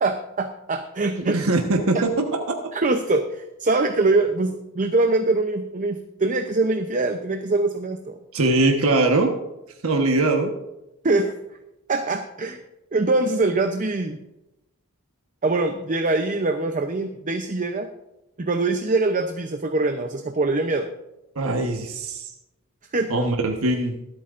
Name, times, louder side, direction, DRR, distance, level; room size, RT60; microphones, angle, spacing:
voice 1, 0.0-1.4 1.9-2.0 2.7-8.1 11.0-11.4 11.9-12.6 12.9-14.3 15.4-17.9 18.4-20.9 22.9-23.1, right 3 dB, 40° right, 6 dB, 0.7 m, -23 dB
voice 2, 1.2-2.5 8.3-9.3 9.8-10.5 21.3-22.3 23.1-24.0, right 2 dB, 85° right, 2 dB, 1.3 m, -21 dB
23.5 x 8.7 x 2.5 m, 0.92 s
head